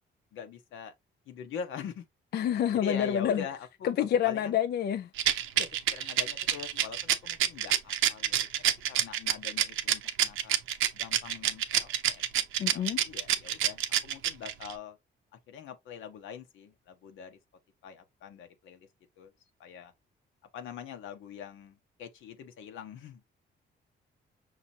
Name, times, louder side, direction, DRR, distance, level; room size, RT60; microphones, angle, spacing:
voice 1, 0.3-0.9 1.3-2.0 2.7-4.5 5.5-8.5 8.9-10.6 10.9-15.0 15.5-17.4 17.8-18.9 19.2-19.3 19.6-19.9 20.5-23.2, left 7 dB, 85° left, 1.1 m, -43 dB
voice 2, 2.3-3.4 3.8-5.1 12.6-13.0, left 9 dB, 55° left, 0.4 m, -27 dB
Rattle, 5.2-14.7, right 11 dB, 85° right, 0.6 m, -27 dB
5.9 x 3.0 x 2.7 m
cardioid pair, 90°, 20 cm